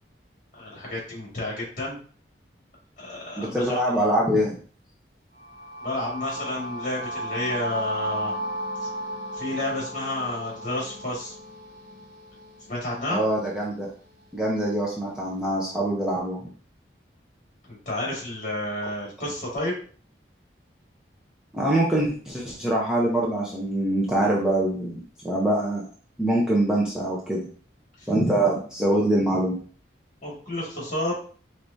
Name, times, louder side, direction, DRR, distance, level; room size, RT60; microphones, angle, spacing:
voice 1, 0.5-2.0 3.0-4.1 5.8-8.3 9.3-11.3 12.7-13.2 17.7-19.8 28.0-28.1 30.2-31.1, left 1 dB, 45° left, -4 dB, 2.0 m, -31 dB
voice 2, 3.4-4.5 13.1-13.9 14.3-16.4 21.5-25.9 26.2-27.5 28.1-29.6, right 1 dB, 5° right, -5 dB, 0.7 m, -24 dB
sound 1, 5.4-13.3, right 1 dB, 55° right, 2.1 m, -34 dB
4.7 x 3.4 x 2.7 m, 0.43 s
head